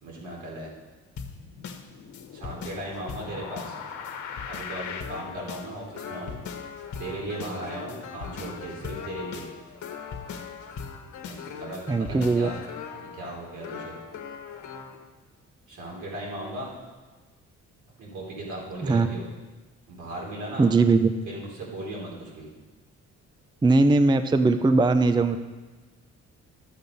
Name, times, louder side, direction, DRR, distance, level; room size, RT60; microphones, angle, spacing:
voice 1, 0.0-0.7 2.3-3.8 4.5-6.4 7.0-9.5 11.3-12.6 12.9-14.0 15.7-16.7 18.0-19.2 19.9-20.7 21.3-22.5, right 1 dB, 75° right, -4 dB, 3.7 m, -37 dB
sound 1, 1.2-15.0, left 6 dB, 70° left, 1.3 m, -39 dB
voice 2, 11.9-12.5 18.8-19.1 20.6-21.1 23.6-25.4, right 3 dB, 15° right, 9 dB, 0.5 m, -20 dB
12.0 x 7.1 x 5.3 m, 1.3 s
cardioid pair, 90°, 30 cm